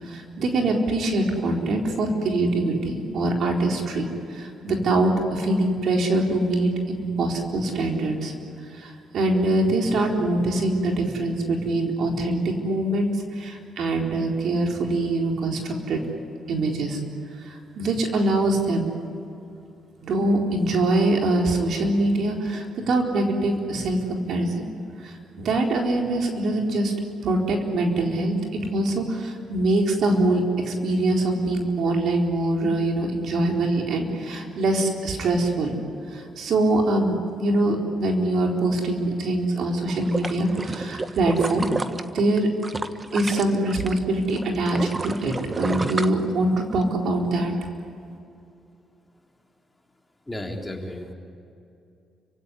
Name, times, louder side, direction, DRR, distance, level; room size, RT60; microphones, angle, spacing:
voice 1, 0.0-8.3 8.7-16.0 16.5-17.0 17.4-18.9 20.0-24.6 25.0-26.9 27.2-35.7 36.1-41.7 42.1-42.5 43.1-47.5, right 2 dB, 65° right, 1 dB, 4.2 m, -24 dB
sound 1, 39.9-44.0 44.3-46.8 47.2-47.3, right 3 dB, 25° right, 1.3 m, -30 dB
voice 2, 50.3-51.1, left 1 dB, 10° left, 1 dB, 3.7 m, -33 dB
29.5 x 16.5 x 9.9 m, 2.6 s
cardioid pair, 90°, 0 cm